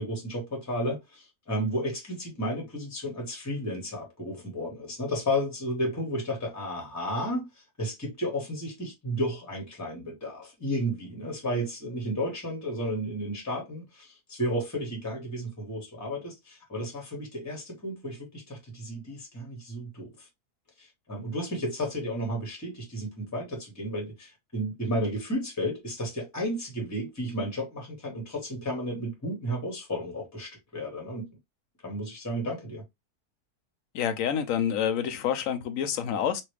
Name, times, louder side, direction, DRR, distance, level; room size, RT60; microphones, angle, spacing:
voice 1, 0.0-20.3 20.8-31.2 31.8-32.8, equal, 10° left, 1.2 m, -33 dB
voice 2, 33.9-36.4, left 8 dB, 65° left, 0.9 m, -28 dB
3.1 x 2.5 x 3.1 m
omnidirectional pair, 1.6 m